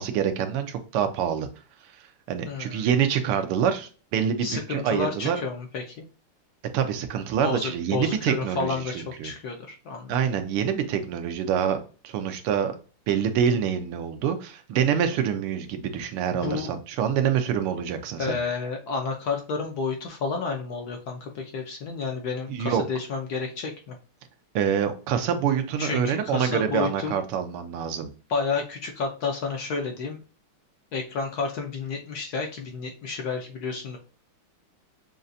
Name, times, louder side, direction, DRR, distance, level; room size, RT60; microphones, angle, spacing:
voice 1, 0.0-1.5 2.3-5.4 6.7-8.8 9.2-9.3 10.1-12.7 13.1-18.4 22.5-22.8 24.5-28.1, right 8 dB, 90° right, 7 dB, 1.7 m, -26 dB
voice 2, 2.4-2.9 4.4-6.1 7.4-10.2 16.4-16.7 18.2-23.9 25.8-27.2 28.3-30.2 30.9-34.0, left 4 dB, 60° left, 3 dB, 1.1 m, -31 dB
6.6 x 2.5 x 2.6 m, 0.36 s
omnidirectional pair, 2.4 m